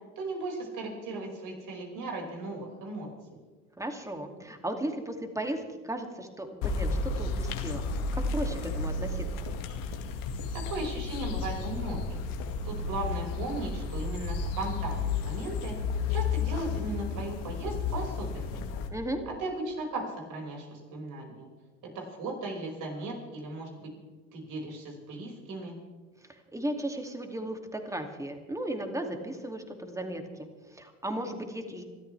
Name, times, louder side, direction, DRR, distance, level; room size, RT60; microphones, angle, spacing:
voice 1, 0.2-3.1 10.5-12.2 12.6-15.8 16.1-18.6 19.3-21.5 21.8-24.0 24.3-25.8, right 2 dB, 55° right, 0 dB, 5.8 m, -37 dB
voice 2, 3.8-9.3 18.9-19.2 26.3-31.8, right 1 dB, 10° right, 5 dB, 2.6 m, -36 dB
sound 1, 6.6-18.9, left 4 dB, 60° left, 2.2 m, -32 dB
26.0 x 13.0 x 3.4 m, 1.4 s
hypercardioid pair, 70°, 38 cm